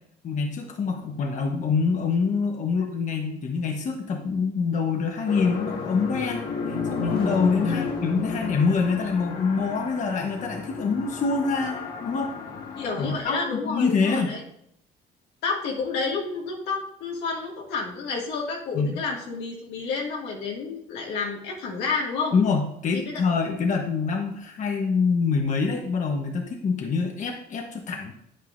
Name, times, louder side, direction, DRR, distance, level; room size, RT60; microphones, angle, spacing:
voice 1, 0.2-6.4 6.7-12.3 13.0-14.4 18.7-19.0 22.3-28.1, left 5 dB, 45° left, 2 dB, 1.2 m, -25 dB
sound 1, 5.3-13.2, left 4 dB, 65° left, 1.7 m, -32 dB
voice 2, 12.8-14.4 15.4-22.4 22.9-23.2, left 4 dB, 85° left, -2 dB, 2.2 m, -30 dB
9.3 x 9.0 x 2.7 m, 0.72 s
cardioid pair, 110°, 17 cm